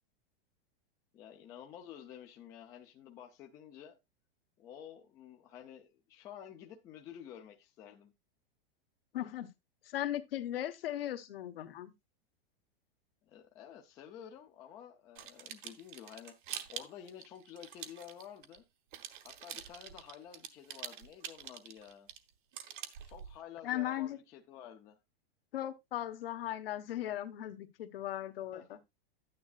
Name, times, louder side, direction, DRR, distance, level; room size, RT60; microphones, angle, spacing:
voice 1, 1.1-4.0 4.6-8.1 13.3-16.3 16.7-18.6 19.2-22.1 23.0-25.0 28.5-28.8, left 9 dB, 10° left, 0.4 m, -51 dB
voice 2, 9.1-9.5 9.8-11.9 23.6-24.2 25.5-28.8, left 12 dB, 70° left, 1.2 m, -37 dB
sound 1, 15.1-18.6 18.9-23.4, right 10 dB, 55° right, 1.1 m, -46 dB
11.0 x 9.5 x 2.4 m
supercardioid pair, 175°, 30 cm